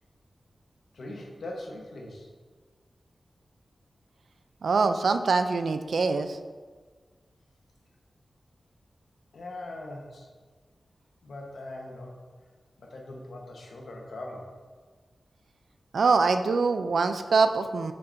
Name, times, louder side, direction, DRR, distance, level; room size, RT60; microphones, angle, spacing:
voice 1, 0.9-2.3 9.3-10.3 11.2-12.2 12.8-14.5, left 1 dB, 85° left, -1 dB, 1.2 m, -41 dB
voice 2, 4.6-6.4 15.9-17.9, right 4 dB, 75° right, 8 dB, 0.4 m, -24 dB
6.8 x 6.7 x 2.7 m, 1.4 s
wide cardioid pair, 140°, 0 cm